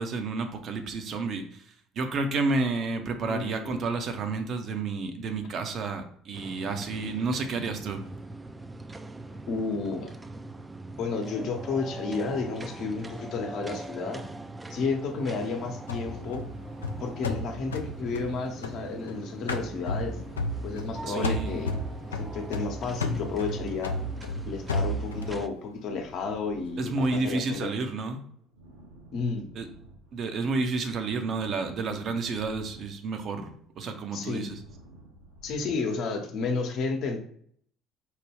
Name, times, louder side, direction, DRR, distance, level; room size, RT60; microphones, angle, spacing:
voice 1, 0.0-8.0 21.1-21.7 26.8-28.2 29.5-29.7 30.1-34.6, right 3 dB, 50° right, 7 dB, 0.7 m, -30 dB
voice 2, 3.3-3.9 5.6-5.7 9.5-10.1 11.0-14.2 14.7-16.5 17.0-20.2 20.6-21.8 22.1-24.0 24.4-27.7 29.1-29.5 34.1-34.5 35.4-37.2, left 4 dB, 60° left, 4 dB, 0.8 m, -32 dB
sound 1, 6.3-25.5, right 2 dB, 20° right, 0.4 m, -41 dB
sound 2, 15.9-19.1 19.5-21.0 21.2-25.4, left 2 dB, 90° left, 0.4 m, -32 dB
sound 3, 18.0-30.6 30.9-35.6, right 1 dB, 85° right, 1.3 m, -53 dB
4.7 x 2.2 x 3.4 m, 0.63 s
hypercardioid pair, 60°, 0 cm